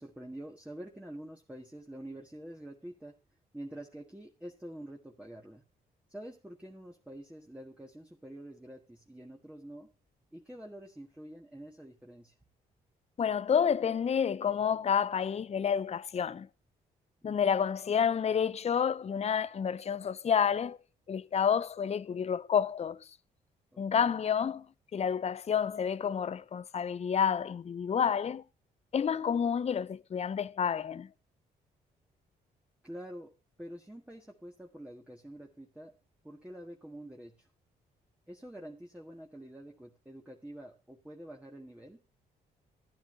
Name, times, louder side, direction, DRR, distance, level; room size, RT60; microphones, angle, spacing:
voice 1, 0.0-3.2 3.5-5.6 6.1-9.9 10.3-12.3 17.2-17.6 23.7-24.2 32.8-33.3 33.6-35.9 36.2-37.5 38.3-42.0, right 1 dB, 5° right, 1.7 m, -47 dB
voice 2, 13.2-16.5 17.2-20.8 21.1-23.0 23.8-24.7 24.9-28.4 28.9-31.1, left 7 dB, 35° left, 0.5 m, -29 dB
13.5 x 10.0 x 2.7 m
hypercardioid pair, 50°, 20 cm